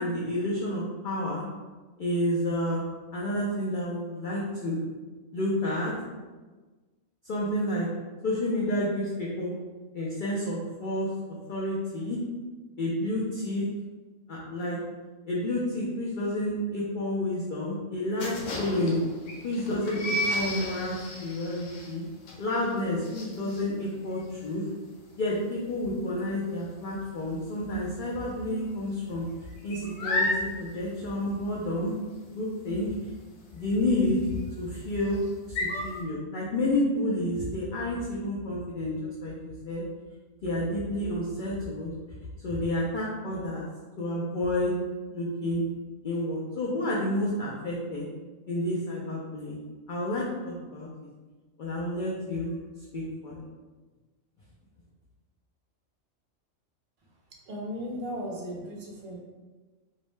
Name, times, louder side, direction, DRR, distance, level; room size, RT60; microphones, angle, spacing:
voice 1, 0.0-1.4 2.0-2.8 3.1-4.8 5.3-5.9 7.2-7.9 8.2-9.5 9.9-11.1 11.5-12.2 12.8-13.6 14.3-14.8 15.3-19.0 19.4-22.0 22.4-24.6 25.2-29.2 29.6-31.9 32.3-32.9 33.5-34.3 34.6-35.2 35.5-39.8 40.4-41.9 42.4-43.7 44.0-44.8 45.1-45.6 46.0-48.0 48.5-49.6 49.9-50.9 51.6-52.6 52.9-53.4, left 1 dB, 75° left, -6 dB, 0.4 m, -30 dB
sound 1, 18.2-27.7 28.0-28.3 28.6-36.0, left 1 dB, 90° left, 1.1 m, -34 dB
voice 2, 57.5-59.2, equal, 60° right, -2 dB, 0.5 m, -36 dB
2.6 x 2.0 x 3.1 m, 1.3 s
omnidirectional pair, 1.4 m